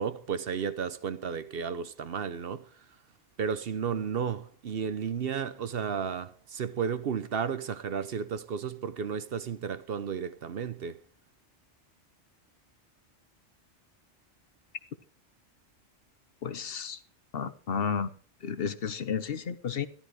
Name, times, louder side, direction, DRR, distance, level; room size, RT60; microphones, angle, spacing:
voice 1, 0.0-2.7 3.4-11.0, right 7 dB, 60° right, 0.9 m, -33 dB
voice 2, 16.4-17.0 17.3-18.1 18.4-19.9, left 6 dB, 60° left, 1.0 m, -32 dB
13.0 x 12.0 x 4.8 m
omnidirectional pair, 1.2 m